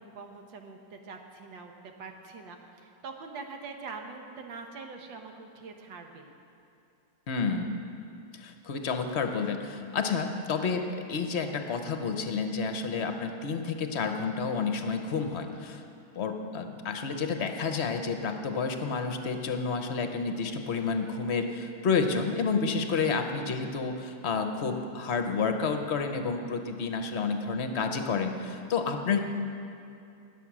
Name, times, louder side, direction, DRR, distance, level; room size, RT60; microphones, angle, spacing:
voice 1, 0.0-6.3 23.0-23.1, right 4 dB, 90° right, 4 dB, 1.8 m, -44 dB
voice 2, 7.3-7.8 8.3-15.8 16.2-29.3, left 5 dB, 50° left, 6 dB, 0.8 m, -30 dB
19.5 x 7.1 x 6.1 m, 2.6 s
omnidirectional pair, 2.0 m